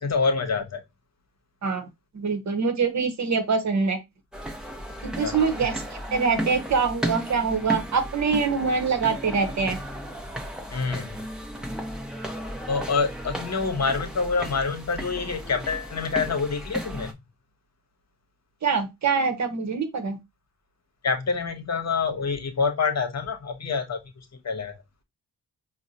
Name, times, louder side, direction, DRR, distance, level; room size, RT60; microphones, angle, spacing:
voice 1, 0.0-0.8 5.2-5.4 10.7-11.2 12.7-17.2 21.0-24.7, left 4 dB, 45° left, 1.0 m, -27 dB
voice 2, 2.1-4.0 5.0-5.8 6.1-9.8 18.6-20.2, right 5 dB, 50° right, 0.9 m, -24 dB
sound 1, 4.3-17.1, equal, ahead, 0.8 m, -34 dB
4.7 x 2.2 x 2.7 m
supercardioid pair, 50°, 37 cm